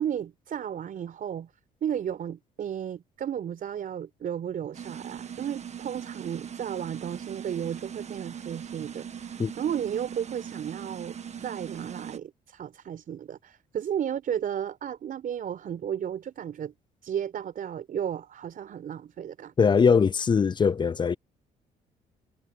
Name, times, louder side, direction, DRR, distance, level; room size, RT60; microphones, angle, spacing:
voice 1, 0.0-1.5 1.8-11.2 11.4-16.7 17.0-19.5, right 9 dB, 60° right, 4.6 m, -33 dB
sound 1, 4.7-12.2, right 8 dB, 45° right, 1.8 m, -40 dB
voice 2, 19.6-21.2, left 6 dB, 30° left, 0.4 m, -21 dB
cardioid pair, 80°, 16 cm